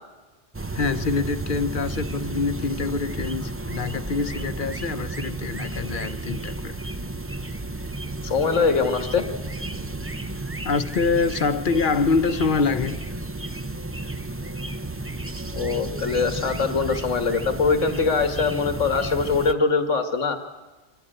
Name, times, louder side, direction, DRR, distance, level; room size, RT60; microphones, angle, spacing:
sound 1, 0.5-19.5, right 2 dB, 15° right, 0.6 m, -32 dB
voice 1, 0.7-6.8 10.6-13.0, left 4 dB, 45° left, 1.1 m, -25 dB
voice 2, 8.2-9.3 15.5-20.4, left 5 dB, 90° left, 1.8 m, -22 dB
24.5 x 15.0 x 8.9 m
omnidirectional pair, 1.2 m